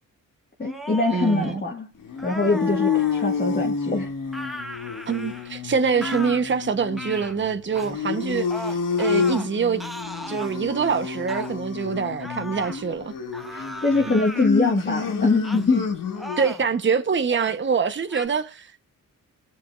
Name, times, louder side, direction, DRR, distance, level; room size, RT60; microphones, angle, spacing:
voice 1, 0.6-1.9 2.2-4.1 13.5-15.9, left 3 dB, 25° left, 1.9 m, -23 dB
sound 1, 0.6-1.5 2.2-3.3 4.3-5.6 6.0-6.4 6.9-7.4 7.8-7.9 8.5-9.5 9.8-10.5 11.3-11.5 12.2-12.8 13.3-14.5 15.4-15.7 16.1-16.7 17.2-17.6 18.1-18.3, equal, ahead, 1.2 m, -36 dB
voice 2, 1.1-1.6 5.1-9.8 10.3-13.1 14.1-14.2 16.4-18.8, right 6 dB, 35° right, 1.0 m, -25 dB
sound 2, 2.0-16.5, left 6 dB, 70° left, 1.7 m, -29 dB
21.0 x 7.8 x 2.5 m
cardioid pair, 85°, 34 cm